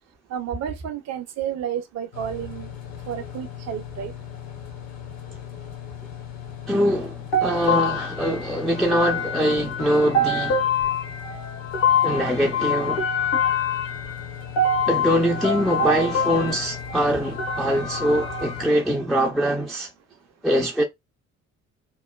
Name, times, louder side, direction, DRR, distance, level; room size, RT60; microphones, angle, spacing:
voice 1, 0.3-2.7 3.1-4.1, right 9 dB, 40° right, 0.6 m, -31 dB
sound 1, 2.1-18.7, left 9 dB, 45° left, 0.9 m, -38 dB
voice 2, 6.7-10.6 12.0-13.1 14.9-19.9 20.4-20.8, equal, ahead, 0.5 m, -23 dB
sound 2, 7.3-18.6, left 3 dB, 65° left, 1.3 m, -25 dB
3.0 x 2.1 x 2.2 m
figure-of-eight pair, 45°, 40 cm